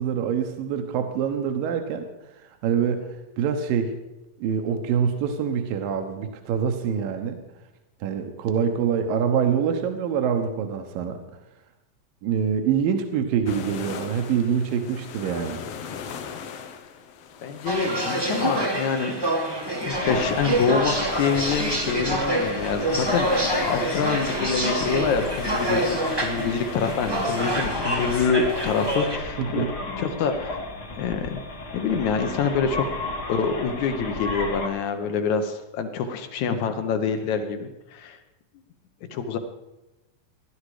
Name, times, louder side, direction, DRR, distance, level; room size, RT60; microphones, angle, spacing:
voice 1, 0.0-2.1 2.6-3.1 3.4-3.9 4.4-7.4 8.0-11.2 12.2-15.6 29.4-29.7, right 7 dB, 75° right, 6 dB, 2.7 m, -25 dB
sound 1, 13.4-29.0, left 7 dB, 85° left, 1.3 m, -40 dB
voice 2, 17.4-19.3 19.8-29.6 30.0-30.6 31.0-31.4 31.7-32.9 33.3-38.2 39.1-39.4, left 6 dB, 65° left, 8 dB, 2.1 m, -26 dB
sound 2, 17.7-29.2, right 1 dB, 20° right, 0.6 m, -27 dB
sound 3, 19.9-34.7, left 2 dB, 45° left, 1.4 m, -33 dB
19.0 x 11.5 x 5.0 m, 0.98 s
omnidirectional pair, 4.2 m